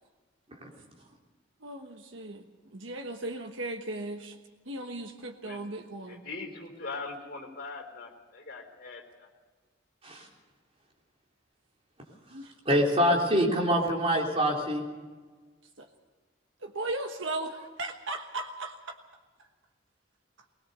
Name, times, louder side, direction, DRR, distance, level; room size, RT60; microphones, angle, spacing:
voice 1, 1.6-2.4 2.7-4.4 4.7-6.2 12.3-12.5 15.8-15.9 16.6-18.9, right 2 dB, 75° right, 4 dB, 1.3 m, -37 dB
voice 2, 6.1-9.3, left 3 dB, 50° left, 2 dB, 3.8 m, -41 dB
voice 3, 12.7-14.8, equal, 30° right, -1 dB, 3.6 m, -25 dB
21.0 x 19.5 x 6.8 m, 1.4 s
head